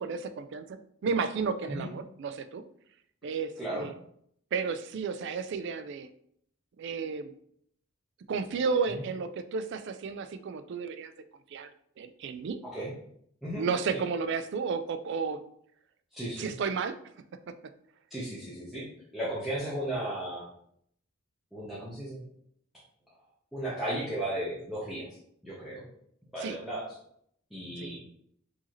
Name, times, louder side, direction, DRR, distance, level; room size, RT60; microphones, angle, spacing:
voice 1, 0.0-2.6 3.2-3.9 4.5-6.1 6.8-7.3 8.3-11.1 11.5-11.7 12.0-12.6 13.5-15.4 16.4-17.0 17.5-17.6 26.4-26.6 27.8-28.0, right 5 dB, 55° right, 11 dB, 0.3 m, -32 dB
voice 2, 3.6-3.9 8.9-9.0 12.7-12.9 13.4-13.6 13.9-14.0 16.1-16.5 18.1-18.9 19.1-20.4 21.5-22.2 23.5-25.2 25.4-25.8 26.3-26.9 27.5-28.0, right 1 dB, ahead, -9 dB, 0.8 m, -35 dB
4.6 x 2.8 x 2.9 m, 0.68 s
head